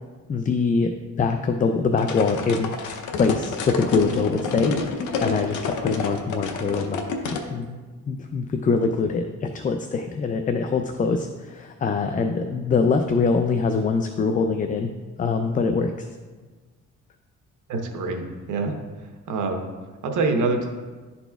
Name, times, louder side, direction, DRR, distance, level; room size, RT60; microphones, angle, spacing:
voice 1, 0.3-2.7 3.1-7.0 7.3-7.8 8.1-14.9 15.2-16.1, left 4 dB, 25° left, 6 dB, 0.4 m, -24 dB
sound 1, 2.0-7.5, left 4 dB, 80° left, 0.8 m, -28 dB
voice 2, 17.7-18.7 19.3-19.6 20.0-20.7, right 3 dB, 80° right, 4 dB, 1.0 m, -25 dB
11.5 x 4.1 x 2.3 m, 1.4 s
cardioid pair, 90°, 30 cm